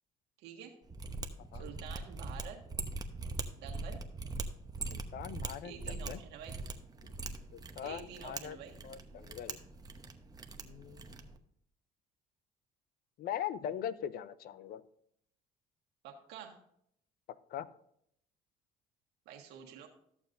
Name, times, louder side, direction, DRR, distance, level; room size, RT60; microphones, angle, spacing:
voice 1, 0.4-0.7 1.5-2.6 3.6-4.0 5.6-6.5 7.8-8.8 16.0-16.6 19.2-19.9, right 8 dB, 85° right, 1 dB, 1.6 m, -48 dB
Mechanisms, 0.9-11.4, right 3 dB, 25° right, 0.9 m, -42 dB
voice 2, 4.9-6.2 7.5-8.6 8.8-9.6 10.6-11.2 13.2-14.8 17.5-17.7, left 10 dB, 65° left, 16 dB, 0.6 m, -41 dB
13.5 x 7.2 x 2.6 m, 0.71 s
cardioid pair, 95°, 17 cm